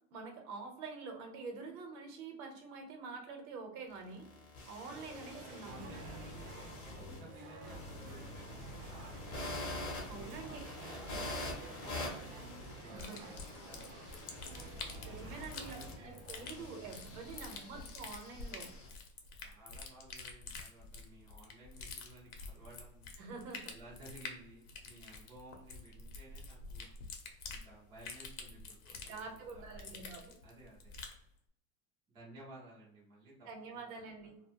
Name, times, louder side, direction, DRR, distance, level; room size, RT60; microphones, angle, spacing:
voice 1, 0.1-4.3 4.7-5.9 10.1-10.6 11.1-11.3 12.9-13.3 15.0-18.7 23.2-23.7 29.1-30.4 33.4-34.4, right 4 dB, 75° right, 3 dB, 0.9 m, -47 dB
sound 1, 3.9-18.9, left 2 dB, 30° left, 0.7 m, -46 dB
sound 2, 4.9-17.6, right 4 dB, 55° right, 0.6 m, -53 dB
voice 2, 5.6-9.5 10.1-12.3 12.8-16.3 17.3-17.8 18.6-18.9 19.4-23.1 23.7-27.0 27.5-30.0 30.4-30.9 32.1-34.3, right 1 dB, 15° right, -5 dB, 0.3 m, -56 dB
sound 3, 13.0-31.2, left 4 dB, 65° left, 0.7 m, -48 dB
2.4 x 2.2 x 2.7 m, 0.71 s
supercardioid pair, 160°, 44 cm